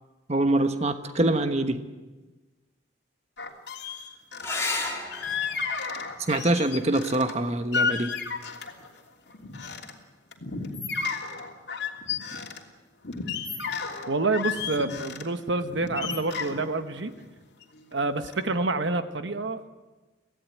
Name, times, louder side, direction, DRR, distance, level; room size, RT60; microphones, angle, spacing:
voice 1, 0.3-1.8 6.3-8.2, right 1 dB, 35° right, 8 dB, 1.2 m, -24 dB
sound 1, 3.4-4.6 5.1-7.3 7.7-8.9 9.3-9.9 10.3-12.6 13.0-15.2 15.7-17.9 18.2-18.5, left 5 dB, 60° left, 3.0 m, -32 dB
sound 2, 4.4-9.4 11.3-12.0 15.4-15.5 15.8-15.9, left 3 dB, 15° left, 3.3 m, -37 dB
voice 2, 14.1-17.1 17.9-19.7, right 3 dB, 70° right, 9 dB, 1.2 m, -28 dB
25.5 x 17.0 x 9.4 m, 1.2 s
head